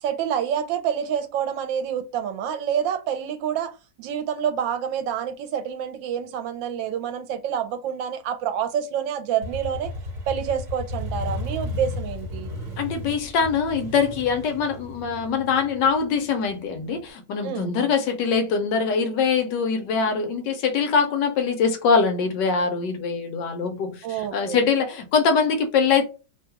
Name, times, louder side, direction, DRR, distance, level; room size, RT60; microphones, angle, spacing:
voice 1, 0.0-9.9 10.3-12.5 17.4-17.7 24.0-24.6, right 8 dB, 85° right, 1.3 m, -27 dB
Motorcycle, 9.4-17.1, left 2 dB, 50° right, 1.3 m, -34 dB
voice 2, 12.8-26.0, left 5 dB, 75° left, 1.3 m, -23 dB
3.2 x 2.3 x 2.8 m
omnidirectional pair, 2.0 m